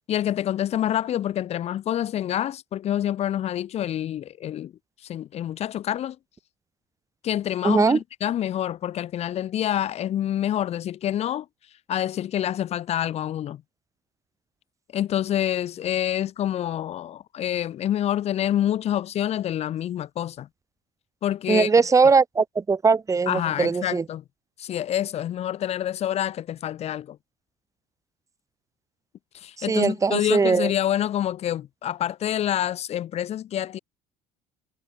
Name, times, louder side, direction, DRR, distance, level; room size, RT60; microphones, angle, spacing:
voice 1, 0.1-4.7 5.0-6.2 7.2-11.5 11.9-13.6 14.9-20.5 21.2-21.7 23.3-24.2 24.6-27.2 29.3-33.8, left 11 dB, 50° left, 2.6 m, -27 dB
voice 2, 7.6-8.0 21.5-24.0 29.6-30.7, right 4 dB, 25° right, 7.4 m, -20 dB
cardioid pair, 115°, 14 cm